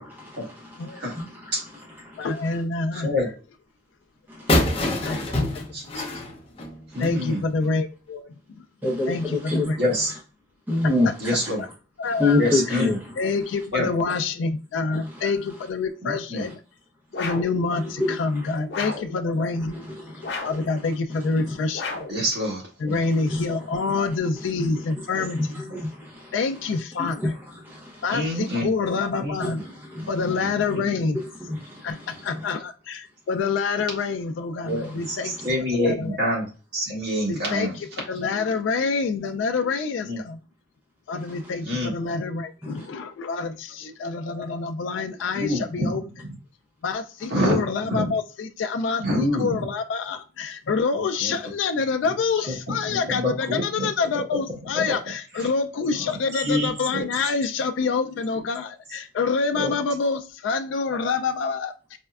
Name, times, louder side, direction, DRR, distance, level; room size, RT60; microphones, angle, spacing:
voice 1, 0.2-1.7 2.0-2.3 4.3-5.4 6.9-7.0 8.8-9.9 10.7-11.3 12.1-13.2 14.9-15.2 18.0-18.5 18.8-18.9 19.7-20.5 21.2-21.5 23.3-23.4 25.1-26.3 27.2-28.0 29.4-30.1 31.1-32.3 34.6-35.6 41.3-41.4 42.6-42.9, left 2 dB, 10° right, 0.7 m, -29 dB
voice 2, 2.2-3.2 5.0-5.3 7.0-8.3 9.1-9.8 11.0-11.1 12.0-12.4 12.7-12.8 13.2-16.6 17.2-19.8 20.4-21.9 22.8-25.6 26.3-27.3 28.0-29.6 30.1-31.2 31.8-32.0 32.2-35.4 35.8-36.2 37.3-40.4 41.1-46.0 46.8-49.1 49.4-62.0, left 4 dB, 85° left, 0.3 m, -27 dB
voice 3, 2.9-3.3 5.7-6.0 6.9-7.4 9.8-10.1 11.2-11.6 12.4-12.9 13.7-13.9 16.0-16.4 22.1-22.9 28.1-28.7 29.2-29.6 30.4-30.8 34.6-36.5 36.7-37.7 40.1-40.2 41.6-41.9 45.3-46.0 47.3-47.6 47.9-48.1 49.0-49.5 51.2-51.3 52.5-52.6 53.1-53.9 55.4-55.5 56.1-57.1 59.5-59.7, left 1 dB, 60° right, 1.5 m, -26 dB
sound 1, 4.5-7.2, left 1 dB, 30° left, 0.6 m, -25 dB
sound 2, 17.1-17.6 18.7-19.2 20.2-20.7 21.7-22.2, left 3 dB, 60° left, 0.7 m, -32 dB
4.2 x 2.1 x 2.3 m
head